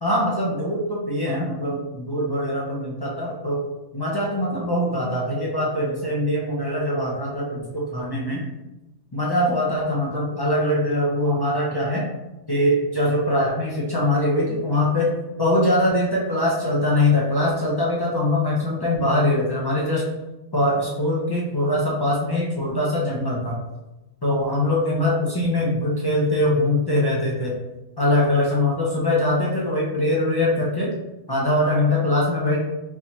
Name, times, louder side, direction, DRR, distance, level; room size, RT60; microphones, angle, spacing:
voice 1, 0.0-3.6 3.9-8.4 9.1-12.0 12.5-15.1 15.4-20.1 20.5-23.6 24.2-27.6 28.0-30.9 31.3-32.6, left 1 dB, 35° left, -5 dB, 0.3 m, -22 dB
3.9 x 2.9 x 2.8 m, 1.0 s
omnidirectional pair, 1.5 m